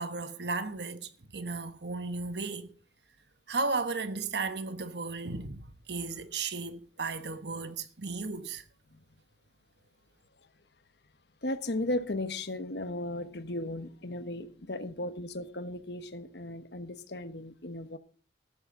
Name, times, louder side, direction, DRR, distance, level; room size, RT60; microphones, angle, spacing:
voice 1, 0.0-2.7 3.5-8.6, right 3 dB, 70° right, 1.2 m, -35 dB
voice 2, 11.4-18.0, left 1 dB, 70° left, 1.3 m, -36 dB
13.5 x 13.0 x 3.9 m
head